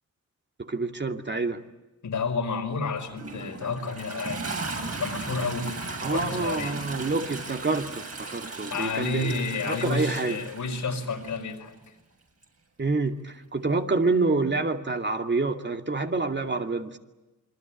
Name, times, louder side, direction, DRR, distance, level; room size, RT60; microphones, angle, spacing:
voice 1, 0.6-1.6 6.0-10.4 12.8-17.0, right 3 dB, 35° right, 5 dB, 2.5 m, -27 dB
voice 2, 2.0-4.4 5.0-6.8 8.7-11.9, left 4 dB, 80° left, 4 dB, 5.0 m, -31 dB
Toilet flush, 3.0-11.4 12.4-12.5, right 3 dB, 55° right, 7.9 m, -37 dB
27.5 x 22.5 x 9.1 m, 1.1 s
cardioid pair, 65°, 30 cm